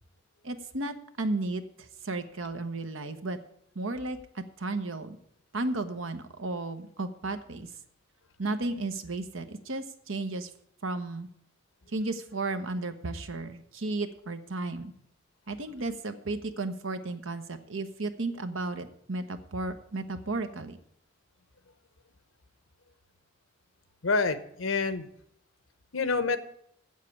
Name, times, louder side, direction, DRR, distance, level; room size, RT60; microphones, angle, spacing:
voice 1, 0.4-3.4 3.7-5.2 5.5-7.7 8.4-10.5 10.8-11.3 11.9-14.9 15.5-20.8, right 2 dB, 90° right, 9 dB, 1.1 m, -34 dB
voice 2, 24.0-25.1 25.9-26.4, left 4 dB, 90° left, 13 dB, 0.9 m, -27 dB
8.0 x 7.5 x 8.6 m, 0.70 s
head